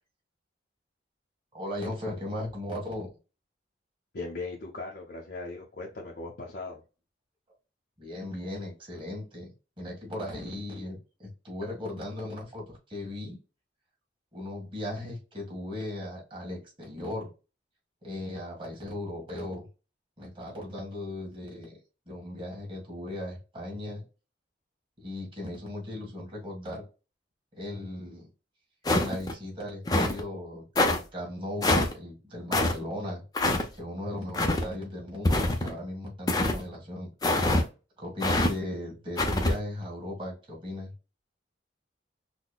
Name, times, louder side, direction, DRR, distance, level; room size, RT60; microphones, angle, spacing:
voice 1, 1.5-3.1 8.0-9.5 9.8-13.4 14.3-17.3 18.0-19.7 20.2-21.8 22.1-24.0 25.0-26.8 27.5-28.3 28.9-33.2 33.7-37.1 38.0-40.9, left 1 dB, 25° right, -1 dB, 1.7 m, -37 dB
voice 2, 4.1-6.8, left 3 dB, 55° left, -2 dB, 0.7 m, -38 dB
sound 1, 28.8-29.3 29.9-30.2 30.8-31.0 31.6-31.9 32.5-32.7 33.3-33.6 34.3-34.6 35.2-35.7 36.3-36.6 37.2-37.6 38.2-38.5 39.2-39.5, left 1 dB, 20° left, 0.5 m, -24 dB
5.9 x 2.1 x 2.2 m, 0.31 s
head